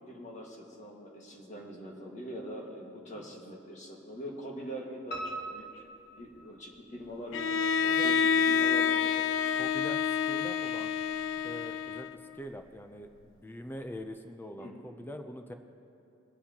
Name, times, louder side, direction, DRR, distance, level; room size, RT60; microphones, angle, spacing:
voice 1, 0.0-5.9 6.2-7.5 7.8-9.0 14.6-14.8, equal, 40° left, -1 dB, 1.7 m, -43 dB
Piano, 5.1-7.0 7.4-8.3 8.6-8.7 9.2-9.3 9.5-9.6, right 2 dB, 55° left, 1.2 m, -42 dB
Bowed string instrument, 7.3-12.3, left 7 dB, 75° left, 0.3 m, -28 dB
voice 2, 9.5-11.0 11.4-12.1 12.3-15.5, equal, 10° left, 6 dB, 0.5 m, -43 dB
24.5 x 8.2 x 2.9 m, 2.8 s
head